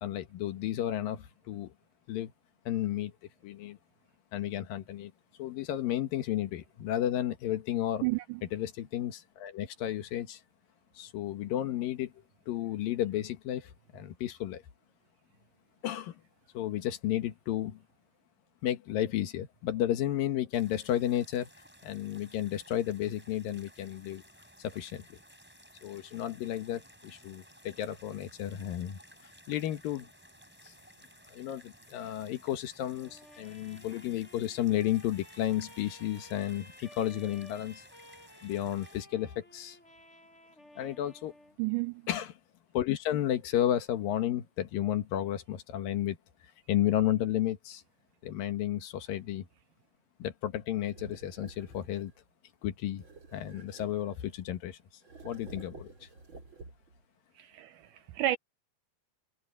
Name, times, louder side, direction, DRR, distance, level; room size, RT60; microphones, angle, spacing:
voice 1, 0.0-1.7 2.1-2.3 2.7-3.1 3.4-3.8 4.3-5.1 5.4-8.0 8.5-10.4 11.0-12.1 12.5-14.6 15.8-16.2 16.5-17.8 18.6-21.5 21.8-24.2 24.6-25.2 25.8-29.0 29.5-30.1 30.6-30.7 31.3-37.8 38.4-39.8 40.8-41.3 42.1-42.3 42.7-46.2 46.7-47.8 48.2-49.5 50.2-52.1 52.6-53.0 53.3-54.8 55.2-55.9, left 12 dB, 70° left, 3.0 m, -32 dB
voice 2, 8.0-8.4 41.6-42.1 57.4-58.4, right 15 dB, 80° right, 1.9 m, -32 dB
sound 1, 20.5-39.0, equal, 5° right, 5.5 m, -57 dB
Trumpet, 33.0-41.6, left 1 dB, 15° left, 8.0 m, -55 dB
sound 2, 50.8-52.2 53.0-54.5 55.0-57.0, right 3 dB, 30° right, 5.0 m, -50 dB
omnidirectional pair, 4.2 m